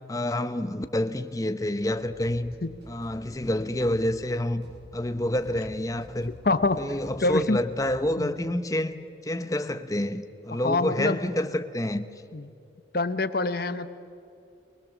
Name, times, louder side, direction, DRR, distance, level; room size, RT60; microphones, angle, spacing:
voice 1, 0.1-2.5 2.9-6.3 6.8-12.1, left 1 dB, 20° left, 0.8 m, -28 dB
sound 1, 1.8-8.2, equal, 65° right, 7.9 m, -49 dB
voice 2, 6.4-6.8 7.2-7.6 8.2-8.3 10.6-11.2 12.3-12.5 12.9-13.9, left 3 dB, 55° left, 0.9 m, -25 dB
24.5 x 21.5 x 7.3 m
head